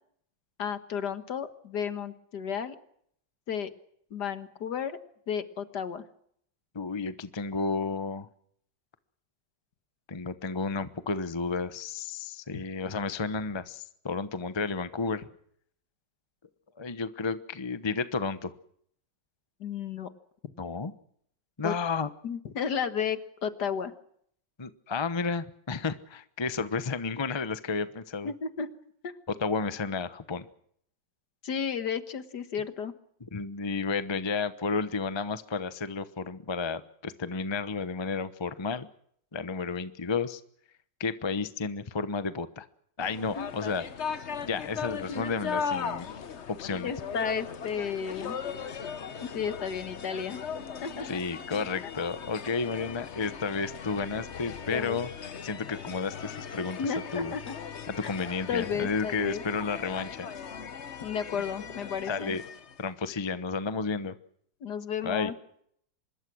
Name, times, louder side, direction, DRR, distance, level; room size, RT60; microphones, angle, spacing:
voice 1, 0.6-2.8 3.5-3.7 4.1-5.0 5.3-6.0 19.6-20.1 21.6-21.7 22.2-23.9 28.2-28.7 29.0-29.1 31.4-32.9 43.4-43.5 45.1-45.3 46.8-48.4 49.2-50.4 50.8-51.2 54.7-55.0 56.8-57.5 58.0-58.1 58.5-59.4 61.0-62.4 64.6-65.3, left 7 dB, 65° left, 11 dB, 2.0 m, -33 dB
voice 2, 6.7-8.3 10.1-15.3 16.8-18.5 20.6-20.9 21.6-22.1 24.6-28.3 29.3-30.5 33.3-38.9 39.3-40.4 41.0-42.7 43.0-43.8 44.4-46.1 46.5-46.9 51.1-55.1 55.4-57.3 57.9-60.3 62.1-62.4 62.8-64.1 65.0-65.3, left 4 dB, 20° left, 12 dB, 0.8 m, -32 dB
sound 1, 43.0-62.8, left 6 dB, 45° left, 1.2 m, -38 dB
25.0 x 21.5 x 6.3 m, 0.67 s
omnidirectional pair, 1.9 m